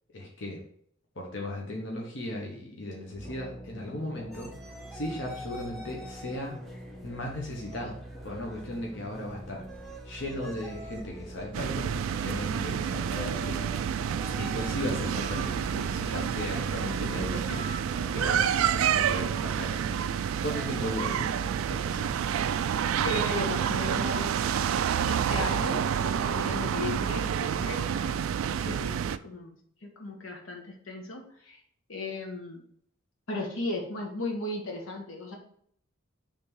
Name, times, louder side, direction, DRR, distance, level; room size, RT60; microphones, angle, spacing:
voice 1, 0.1-0.6 1.1-4.5 4.9-6.6 7.0-9.7 10.0-13.7 14.3-20.1 20.4-22.2 28.6-28.8, left 1 dB, 65° left, -1 dB, 1.1 m, -37 dB
sound 1, 3.1-19.2, right 1 dB, 30° left, 2.4 m, -45 dB
sound 2, 4.3-21.0, equal, ahead, 0.6 m, -47 dB
sound 3, 11.5-29.2, right 8 dB, 85° right, 0.3 m, -29 dB
voice 2, 23.0-24.4 25.1-29.5 29.8-31.6 31.9-32.6 33.3-35.4, left 2 dB, 80° left, 1 dB, 1.2 m, -36 dB
5.2 x 3.4 x 5.3 m, 0.63 s
head